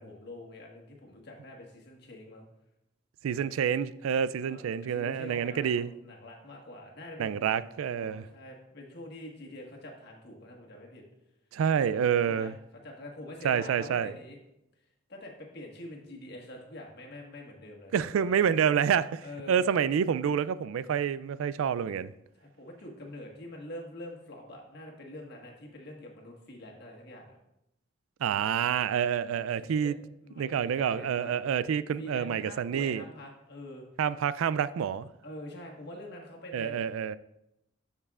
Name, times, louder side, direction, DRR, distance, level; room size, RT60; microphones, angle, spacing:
voice 1, 0.0-2.5 4.4-4.6 4.9-7.5 7.8-11.0 11.8-11.9 12.3-12.5 12.8-14.4 15.1-18.3 19.2-19.7 22.4-27.4 29.4-31.3 32.0-33.8 35.2-36.8, left 1 dB, 55° left, 1.5 m, -45 dB
voice 2, 3.2-5.9 7.2-8.3 11.5-12.5 13.4-14.1 17.9-22.1 28.2-29.9 30.4-33.0 34.0-35.1 36.5-37.2, right 8 dB, 85° right, 0.3 m, -28 dB
13.0 x 5.5 x 2.4 m
head